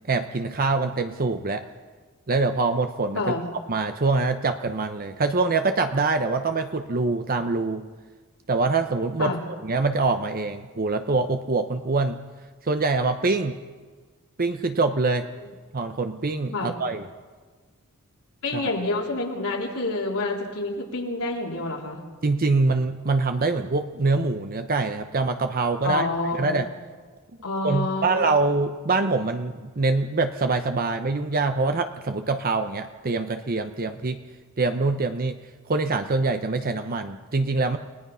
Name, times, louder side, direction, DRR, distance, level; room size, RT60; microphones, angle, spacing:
voice 1, 0.1-1.6 2.3-3.3 3.7-7.9 8.5-9.3 9.6-12.2 12.6-13.6 14.4-15.3 15.7-17.0 18.5-18.7 22.2-26.1 26.3-26.7 27.6-34.2 34.6-35.4 35.7-37.8, right 3 dB, 40° right, 7 dB, 0.8 m, -24 dB
voice 2, 3.1-3.5 9.2-9.4 16.5-16.7 18.4-22.0 25.8-26.8 27.4-28.3, left 2 dB, 80° left, -2 dB, 3.9 m, -28 dB
30.0 x 18.5 x 5.6 m, 1.4 s
head